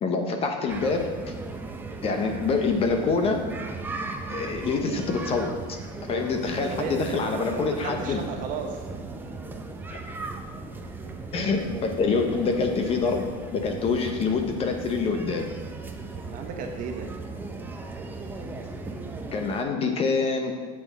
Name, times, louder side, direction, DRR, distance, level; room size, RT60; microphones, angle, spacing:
voice 1, 0.0-1.1 2.0-3.4 4.3-5.8 6.1-8.2 11.3-13.3 13.5-15.5 19.3-20.5, left 4 dB, 30° left, 4 dB, 0.8 m, -26 dB
sound 1, 0.7-19.6, right 3 dB, 10° right, 0.5 m, -37 dB
voice 2, 6.6-8.8 11.0-11.2 12.4-12.6 16.3-17.1, right 5 dB, 45° right, 3 dB, 1.1 m, -35 dB
7.5 x 6.1 x 4.0 m, 1.5 s
supercardioid pair, 140°, 19 cm